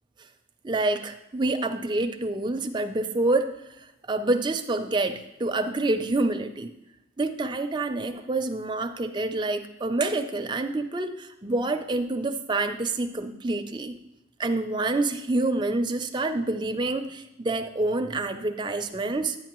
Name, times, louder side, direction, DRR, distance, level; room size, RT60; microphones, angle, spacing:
voice 1, 0.6-3.6 4.1-6.7 7.2-14.0 14.4-19.4, right 2 dB, 20° right, 6 dB, 0.4 m, -27 dB
10.0 x 9.1 x 3.0 m, 0.90 s
head